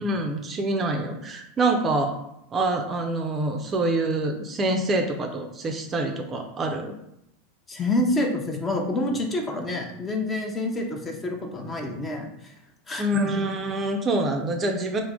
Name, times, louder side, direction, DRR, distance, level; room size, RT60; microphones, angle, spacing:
voice 1, 0.0-2.2 2.5-7.0 13.0-15.0, right 2 dB, 30° right, 3 dB, 0.4 m, -26 dB
voice 2, 7.7-12.3 12.9-13.3, left 2 dB, 25° left, 2 dB, 0.7 m, -27 dB
3.4 x 2.0 x 3.6 m, 0.80 s
hypercardioid pair, 90°, 0 cm